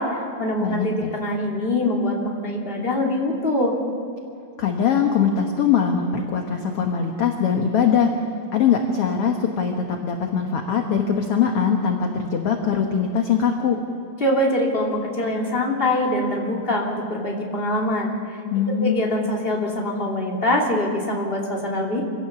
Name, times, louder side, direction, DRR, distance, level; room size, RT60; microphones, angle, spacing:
voice 1, 0.0-3.7 14.2-18.4 18.8-22.0, left 1 dB, 15° left, -2 dB, 2.6 m, -24 dB
voice 2, 0.6-1.1 4.6-8.1 8.5-13.8 18.5-19.1, left 7 dB, 60° left, 3 dB, 1.6 m, -22 dB
26.0 x 16.5 x 6.9 m, 2.5 s
omnidirectional pair, 4.2 m